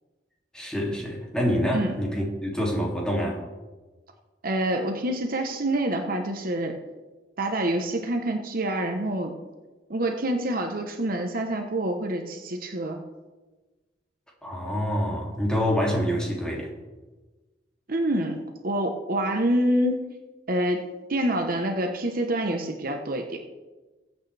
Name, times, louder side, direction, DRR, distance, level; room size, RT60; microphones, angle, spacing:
voice 1, 0.5-3.4 14.4-16.7, equal, 5° left, -3 dB, 2.7 m, -26 dB
voice 2, 4.4-6.8 7.4-9.3 9.9-13.0 17.9-20.1 20.5-23.4, right 1 dB, 55° right, 4 dB, 1.0 m, -27 dB
20.5 x 8.3 x 3.4 m, 1.2 s
head